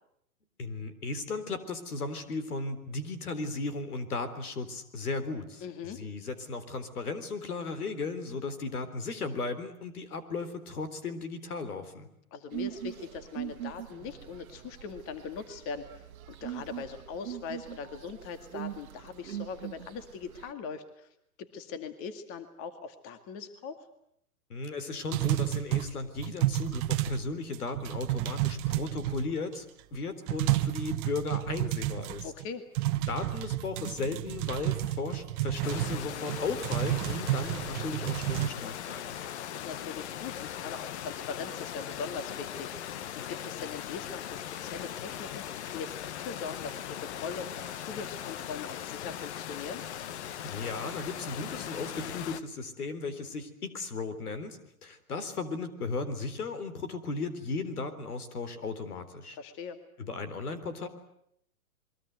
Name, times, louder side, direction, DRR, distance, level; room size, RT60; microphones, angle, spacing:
voice 1, 0.6-12.1 24.5-29.7 29.9-32.3 33.1-39.2 50.4-59.4 60.0-60.9, left 3 dB, 80° left, 11 dB, 3.9 m, -36 dB
voice 2, 5.6-6.0 12.3-21.1 21.4-23.9 32.2-32.6 39.4-42.7 43.1-45.5 45.7-49.8 59.4-59.8, left 5 dB, 30° left, 9 dB, 2.2 m, -41 dB
sound 1, 12.5-20.5, right 11 dB, 70° right, 1.4 m, -42 dB
sound 2, 25.1-27.3 27.5-29.5 29.9-30.0 30.3-32.4 32.8-38.5, right 15 dB, 35° right, 1.0 m, -31 dB
sound 3, 35.6-52.4, left 10 dB, 50° left, 1.3 m, -39 dB
28.0 x 22.5 x 8.1 m, 0.74 s
hypercardioid pair, 135°, 44 cm